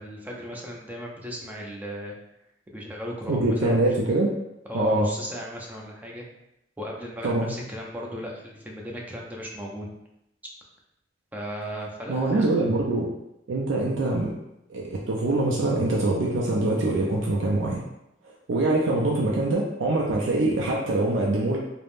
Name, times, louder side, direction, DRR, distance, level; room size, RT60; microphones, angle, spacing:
voice 1, 0.0-2.1 2.7-3.9 4.7-6.3 6.8-9.9 11.3-12.5, equal, 10° right, -2 dB, 0.4 m, -36 dB
voice 2, 3.3-4.3 4.7-5.1 7.2-7.5 12.1-13.1 13.5-14.3 14.7-17.8 18.2-21.6, right 2 dB, 85° right, -3 dB, 0.4 m, -24 dB
3.3 x 2.0 x 2.5 m, 0.84 s
head